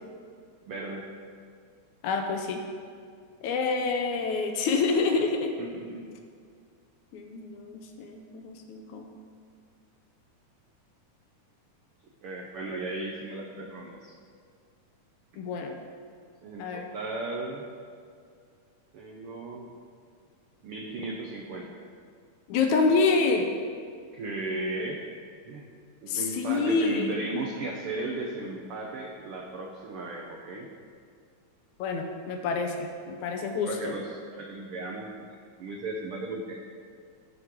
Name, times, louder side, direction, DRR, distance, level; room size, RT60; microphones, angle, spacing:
voice 1, 0.7-1.0 5.6-6.1 12.2-14.1 16.4-17.7 18.9-19.7 20.6-21.8 24.1-25.0 25.4-25.7 26.0-30.7 33.6-34.0 34.3-35.3 35.6-36.6, right 2 dB, 80° right, -1 dB, 1.2 m, -35 dB
voice 2, 2.0-2.6 3.4-5.6 7.1-9.1 15.4-15.8 16.6-16.9 22.5-23.5 26.1-27.2 31.8-34.0, left 4 dB, 75° left, 4 dB, 2.0 m, -27 dB
17.0 x 6.2 x 3.7 m, 2.2 s
omnidirectional pair, 3.6 m